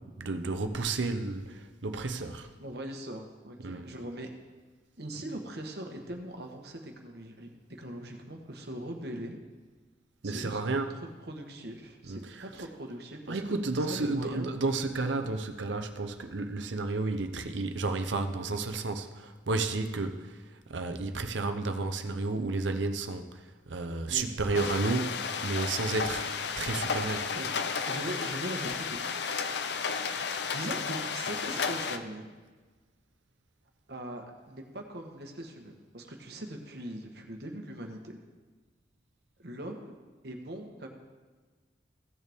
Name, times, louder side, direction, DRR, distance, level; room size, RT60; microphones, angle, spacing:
voice 1, 0.2-2.5 3.6-3.9 10.2-11.0 12.1-12.5 13.3-20.4 20.7-26.3 26.6-27.3, right 3 dB, 90° right, 7 dB, 0.8 m, -32 dB
voice 2, 2.6-4.3 5.0-7.5 7.8-9.4 10.2-14.6 24.1-24.2 24.6-24.7 27.3-29.2 30.1-32.3 33.9-38.2 39.4-39.9 40.2-40.9, right 1 dB, 60° right, 3 dB, 1.3 m, -41 dB
sound 1, 24.5-32.0, left 5 dB, 70° left, 0.6 m, -33 dB
16.0 x 6.6 x 3.6 m, 1.4 s
head